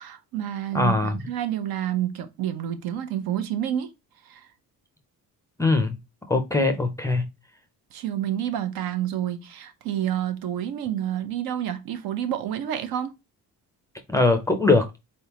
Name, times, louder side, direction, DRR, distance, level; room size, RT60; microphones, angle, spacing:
voice 1, 0.0-3.9 4.2-4.5 7.9-13.1, right 11 dB, 75° right, 0.9 m, -29 dB
voice 2, 0.7-1.2 5.6-6.0 6.3-7.3 14.1-14.9, left 3 dB, 10° left, 0.4 m, -21 dB
4.2 x 3.5 x 2.9 m
cardioid pair, 175°, 36 cm